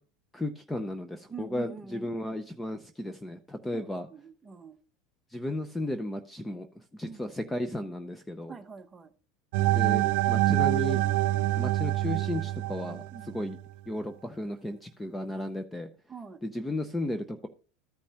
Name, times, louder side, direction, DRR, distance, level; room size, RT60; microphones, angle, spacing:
voice 1, 0.3-4.1 5.3-6.7 6.9-8.6 9.7-11.0 11.6-13.6 13.9-15.9 16.4-17.5, left 1 dB, 10° left, 9 dB, 0.5 m, -34 dB
voice 2, 1.3-2.1 3.7-4.8 7.0-7.3 8.5-9.1 13.1-13.4 16.1-16.4, right 5 dB, 15° right, 7 dB, 0.9 m, -45 dB
sound 1, 9.5-13.5, right 16 dB, 65° right, 0.4 m, -26 dB
14.0 x 5.2 x 2.9 m, 0.39 s
supercardioid pair, 145°, 0 cm